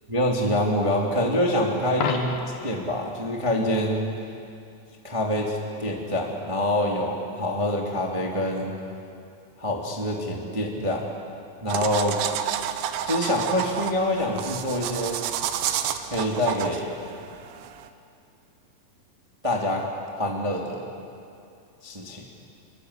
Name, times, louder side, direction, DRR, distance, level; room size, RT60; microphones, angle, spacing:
voice 1, 0.1-2.3 2.6-4.1 5.0-8.7 9.6-11.1 11.6-12.2 13.0-15.2 16.0-16.9 19.4-19.8 20.1-20.9 21.8-22.2, left 1 dB, 10° right, -1 dB, 1.8 m, -26 dB
Coin (dropping), 1.9-2.8 8.8-9.0, left 6 dB, 65° left, 3.4 m, -30 dB
sound 1, 11.7-17.9, right 10 dB, 85° right, 3.4 m, -30 dB
28.5 x 23.5 x 8.3 m, 2.6 s
omnidirectional pair, 5.0 m